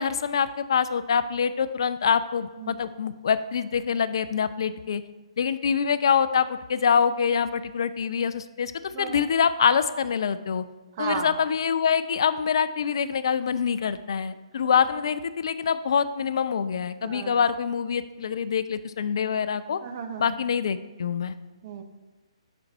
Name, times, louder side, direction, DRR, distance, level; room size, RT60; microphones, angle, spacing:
voice 1, 0.0-5.0 5.4-8.7 9.0-10.6 11.0-19.8 20.2-21.4, left 7 dB, 50° left, 13 dB, 0.3 m, -25 dB
voice 2, 11.0-11.4 14.6-14.7 17.0-17.4 19.8-20.4 21.6-21.8, right 6 dB, 35° right, 7 dB, 0.5 m, -34 dB
6.7 x 3.9 x 4.5 m, 1.2 s
figure-of-eight pair, 130°, 3 cm